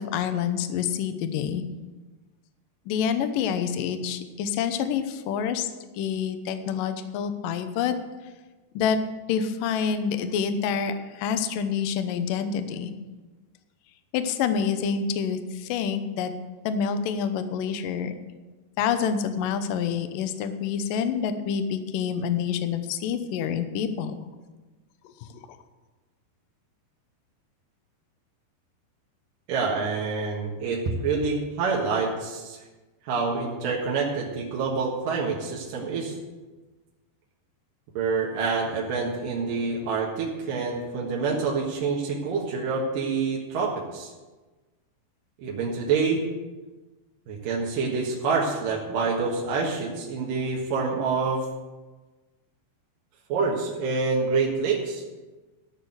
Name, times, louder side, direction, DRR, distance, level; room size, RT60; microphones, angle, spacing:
voice 1, 0.0-1.6 2.9-5.7 5.9-7.9 8.8-9.0 9.3-12.9 14.1-16.3 16.6-18.1 18.8-24.2 25.0-25.3, left 7 dB, 80° left, 9 dB, 2.0 m, -27 dB
voice 2, 29.5-32.6 33.0-36.2 37.9-44.1 45.4-46.2 47.3-51.5 53.3-55.0, right 4 dB, 60° right, -3 dB, 2.7 m, -27 dB
13.5 x 6.6 x 7.8 m, 1.2 s
omnidirectional pair, 5.1 m